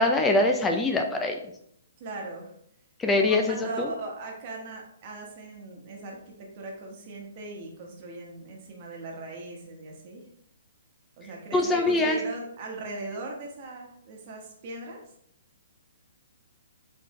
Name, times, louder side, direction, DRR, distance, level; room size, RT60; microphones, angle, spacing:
voice 1, 0.0-1.4 3.0-3.9 11.5-12.2, left 2 dB, 10° left, 3 dB, 0.3 m, -23 dB
voice 2, 2.0-2.5 3.2-10.2 11.2-15.0, right 2 dB, 35° right, 0 dB, 1.1 m, -39 dB
4.1 x 3.9 x 3.1 m, 0.71 s
hypercardioid pair, 160°, 0 cm